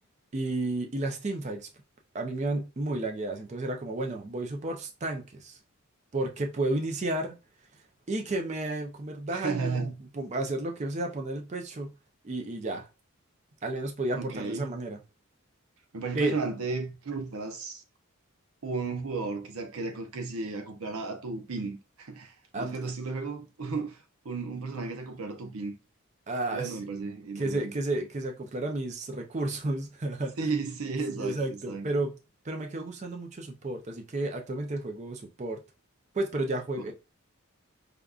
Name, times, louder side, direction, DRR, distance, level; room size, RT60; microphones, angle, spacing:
voice 1, 0.3-1.7 2.1-5.6 6.1-7.3 7.7-7.8 8.1-11.9 12.2-12.9 13.6-15.0 16.1-16.4 22.5-22.8 26.3-26.8 27.4-30.3 31.1-32.1 32.4-35.6 36.1-36.9, right 2 dB, 30° right, 0.4 m, -32 dB
voice 2, 9.3-9.9 14.1-14.7 15.9-17.8 18.6-25.7 26.5-27.7 30.4-31.9 36.8-36.9, right 4 dB, 85° right, 0.7 m, -34 dB
5.0 x 2.2 x 2.4 m
head